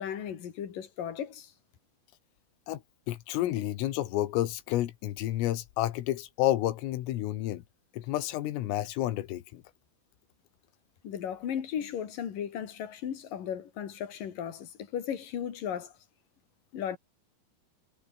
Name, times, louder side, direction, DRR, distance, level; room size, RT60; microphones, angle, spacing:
voice 1, 0.0-1.5 11.0-15.9 16.7-17.0, left 9 dB, 50° left, 3.5 m, -36 dB
voice 2, 3.1-7.6 7.9-9.6, left 14 dB, 80° left, 4.1 m, -30 dB
omnidirectional pair, 6.0 m